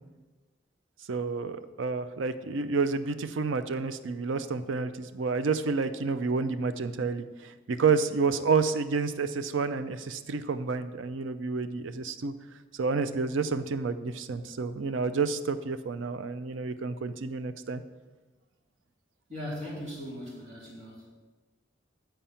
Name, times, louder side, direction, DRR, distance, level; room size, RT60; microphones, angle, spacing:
voice 1, 1.1-12.3 12.7-17.8, right 4 dB, 90° right, 10 dB, 0.5 m, -29 dB
voice 2, 19.3-21.1, equal, 35° right, -6 dB, 2.7 m, -39 dB
8.9 x 4.5 x 5.7 m, 1.2 s
head